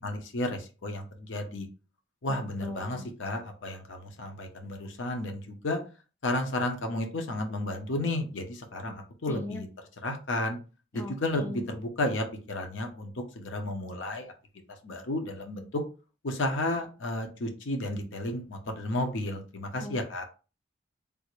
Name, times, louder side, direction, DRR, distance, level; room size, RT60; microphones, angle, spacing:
voice 1, 0.0-1.7 2.2-5.8 6.2-9.7 10.0-10.6 10.9-14.3 14.8-15.8 16.2-20.2, left 1 dB, 80° left, 5 dB, 0.7 m, -32 dB
voice 2, 2.3-3.1 9.3-9.6 10.9-11.6 19.8-20.0, left 2 dB, 10° left, 4 dB, 0.4 m, -39 dB
3.4 x 2.5 x 3.1 m, 0.33 s
head